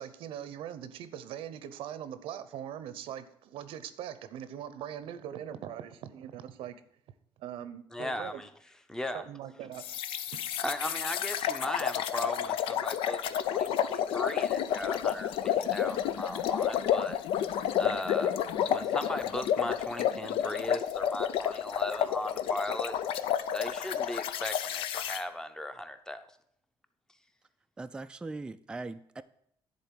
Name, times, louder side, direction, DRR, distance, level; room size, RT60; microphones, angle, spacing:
voice 1, 0.0-6.8 7.4-8.4 9.1-9.8 10.3-10.5, right 10 dB, 85° right, 0.7 m, -41 dB
voice 2, 7.9-8.5 8.9-9.2 10.6-13.2 13.5-17.2 17.8-26.3, left 1 dB, 5° left, 0.7 m, -37 dB
sound 1, 9.8-25.2, left 9 dB, 85° left, 0.5 m, -30 dB
voice 3, 27.8-29.2, right 3 dB, 10° right, 0.3 m, -40 dB
10.5 x 3.9 x 7.5 m
cardioid pair, 130°, 9 cm